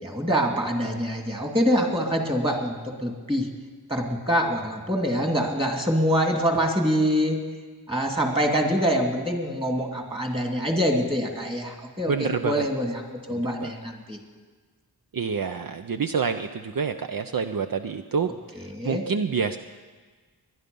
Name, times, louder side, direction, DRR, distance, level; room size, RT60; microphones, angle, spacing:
voice 1, 0.0-3.5 3.9-7.4 7.9-13.0 13.3-14.2 18.5-19.0, equal, 15° right, 2 dB, 2.6 m, -25 dB
voice 2, 12.1-12.6 13.3-13.7 15.1-18.3 18.8-19.6, right 5 dB, 60° right, 8 dB, 0.6 m, -27 dB
22.0 x 11.0 x 5.4 m, 1.4 s
wide cardioid pair, 65°, 38 cm